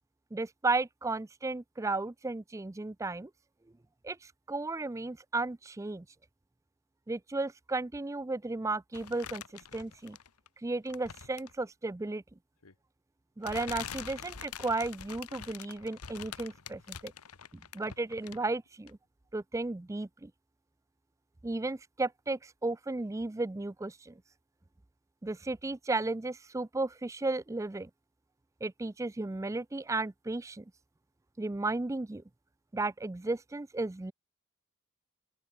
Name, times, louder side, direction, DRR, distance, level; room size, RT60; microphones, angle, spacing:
voice 1, 0.3-3.3 4.0-6.1 7.1-10.2 10.6-12.2 13.4-17.1 17.5-19.0 19.3-20.3 21.4-24.2 25.2-27.9 28.6-30.6 31.4-32.2 32.7-34.1, right 2 dB, 15° right, 0.4 m, -34 dB
sound 1, 8.9-10.5 10.9-11.6 12.6-12.7 13.4-18.5 18.9-19.0, left 7 dB, 85° left, 1.4 m, -45 dB
open air
head